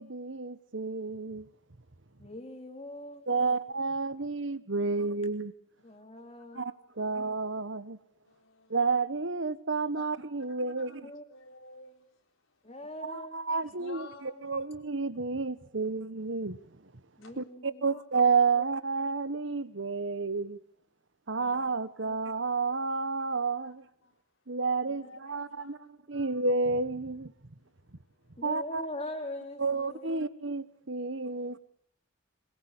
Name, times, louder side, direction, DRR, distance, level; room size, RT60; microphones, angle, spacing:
voice 1, 0.0-1.5 3.3-5.5 6.5-8.0 8.7-11.0 13.1-14.0 14.4-16.6 17.4-20.6 21.3-23.9 24.5-25.8 26.1-27.3 28.4-28.8 29.6-31.6, right 4 dB, 70° right, 1.3 m, -30 dB
voice 2, 2.2-3.3 5.8-6.7 11.0-11.7 12.6-13.5 17.2-18.0 18.5-18.6 21.3-22.2 24.9-25.1 28.4-30.2, left 1 dB, 30° left, 3.3 m, -43 dB
voice 3, 6.7-7.2 8.2-8.8 9.9-10.1 10.4-12.9 13.5-14.6 15.8-15.9 17.2-17.3 17.9-18.0 18.8-18.9 21.8-22.2 23.6-23.8 24.0-24.4 24.9-26.3 27.6-28.6 30.5-30.6 31.0-31.6, left 3 dB, 85° left, 4.0 m, -54 dB
22.0 x 22.0 x 8.2 m
head